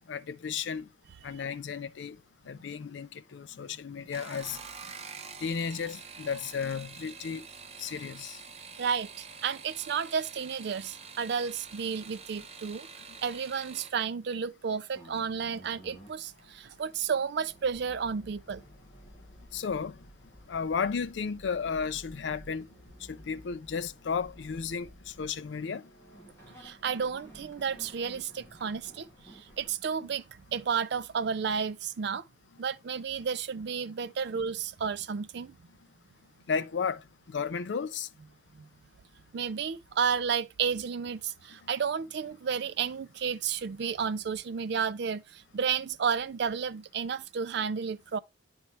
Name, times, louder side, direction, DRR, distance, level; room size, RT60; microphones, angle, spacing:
voice 1, 0.1-0.9 1.2-2.2 2.5-4.6 5.4-7.4 7.8-8.4 19.5-19.9 20.5-22.7 23.1-25.9 36.5-38.1, left 6 dB, 70° left, 0.4 m, -33 dB
sound 1, 4.0-14.0 15.2-15.7 16.1-16.5 16.8-16.9, right 6 dB, 35° right, 0.8 m, -47 dB
voice 2, 8.8-12.9 13.2-18.6 26.6-30.2 30.5-32.2 32.6-35.6 38.6-38.7 39.3-48.2, right 6 dB, 65° right, 0.4 m, -32 dB
sound 2, 14.9-29.7, equal, 15° left, 2.1 m, -53 dB
9.6 x 4.4 x 3.1 m
head